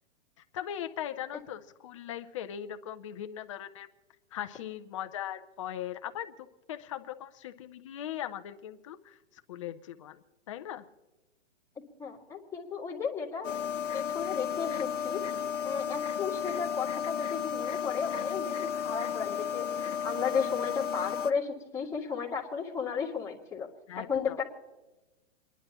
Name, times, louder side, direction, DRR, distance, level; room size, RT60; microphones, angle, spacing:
voice 1, 0.5-3.9 4.3-6.3 6.7-9.2 9.5-10.8 23.9-24.4, left 11 dB, 25° left, 8 dB, 0.5 m, -39 dB
voice 2, 12.0-13.5 13.9-15.2 15.6-23.7 24.1-24.4, left 6 dB, 10° left, -5 dB, 1.8 m, -34 dB
sound 1, 13.4-21.3, left 7 dB, 80° left, 0.9 m, -33 dB
29.5 x 11.0 x 2.9 m, 1.1 s
hypercardioid pair, 155°, 36 cm